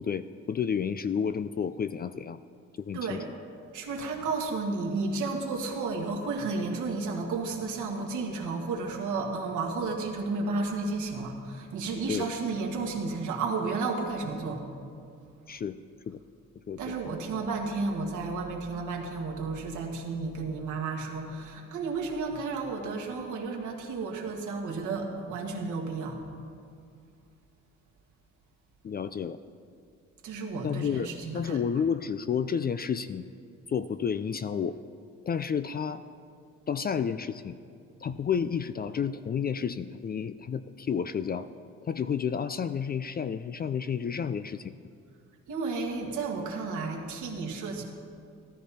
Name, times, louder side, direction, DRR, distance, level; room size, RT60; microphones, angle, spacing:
voice 1, 0.0-2.4 2.8-3.2 12.1-12.3 15.5-15.8 16.1-16.2 16.7-16.8 28.8-29.4 30.6-33.3 33.7-34.8 35.3-36.0 36.7-37.6 38.0-41.5 41.9-44.7, left 7 dB, 30° left, 13 dB, 0.4 m, -31 dB
voice 2, 2.9-3.3 3.7-14.6 16.8-26.2 30.2-31.6 45.5-47.8, right 3 dB, 80° right, 0 dB, 1.8 m, -32 dB
13.5 x 13.0 x 4.2 m, 2.4 s
cardioid pair, 90°, 30 cm